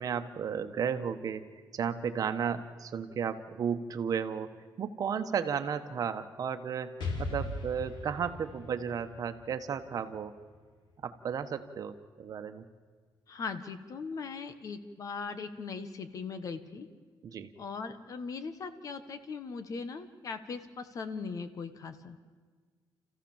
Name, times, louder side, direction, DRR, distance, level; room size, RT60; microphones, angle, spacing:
voice 1, 0.0-4.5 4.8-10.4 11.0-12.6 17.2-17.5, right 7 dB, 50° right, 8 dB, 1.2 m, -34 dB
Explosion, 7.0-10.8, left 2 dB, 75° left, 3.7 m, -39 dB
voice 2, 13.3-16.9 17.6-22.2, left 5 dB, 45° left, 10 dB, 1.4 m, -39 dB
29.0 x 15.0 x 7.2 m, 1.5 s
cardioid pair, 140°, 8 cm